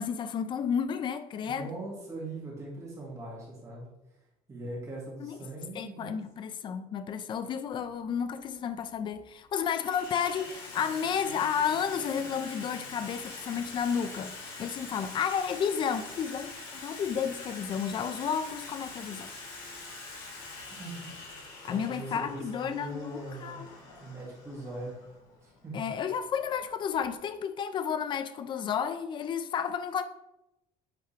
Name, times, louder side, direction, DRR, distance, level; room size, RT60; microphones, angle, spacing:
voice 1, 0.0-1.7 5.2-5.4 5.7-19.3 21.6-23.7 25.7-30.0, left 7 dB, 35° left, 0.4 m, -32 dB
voice 2, 1.4-3.9 4.5-6.2 20.8-21.1 21.7-23.6 24.0-25.0 25.4-25.8, right 2 dB, 20° right, 2.0 m, -41 dB
Water tap faucet / Sink (filling or washing), 7.8-7.9 8.8-9.2 9.5-27.1, left 3 dB, 70° left, 1.9 m, -45 dB
8.2 x 3.5 x 3.2 m
cardioid pair, 155°, 15 cm